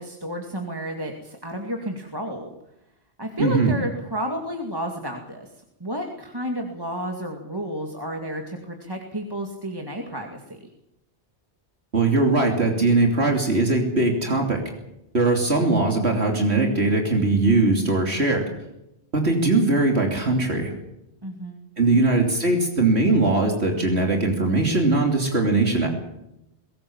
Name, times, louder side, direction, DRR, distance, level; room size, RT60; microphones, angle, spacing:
voice 1, 0.0-2.5 3.2-5.5 5.8-10.7 21.2-22.1, equal, 20° right, 2 dB, 2.3 m, -31 dB
voice 2, 3.4-3.7 11.9-14.6 15.1-18.4 19.1-20.7 21.8-25.9, right 2 dB, 70° right, 2 dB, 3.4 m, -20 dB
22.0 x 18.0 x 7.3 m, 0.86 s
omnidirectional pair, 1.1 m